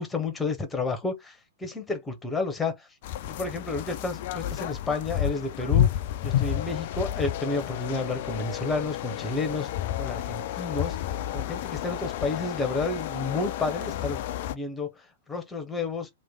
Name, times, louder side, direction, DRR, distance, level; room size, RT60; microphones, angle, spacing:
voice 1, 0.0-2.9 3.2-5.9 6.2-9.7 10.0-14.2 14.5-16.1, left 3 dB, 10° left, 1.0 m, -31 dB
sound 1, 3.0-14.5, left 11 dB, 45° left, 0.3 m, -30 dB
3.1 x 2.5 x 3.7 m
figure-of-eight pair, 105°, 0 cm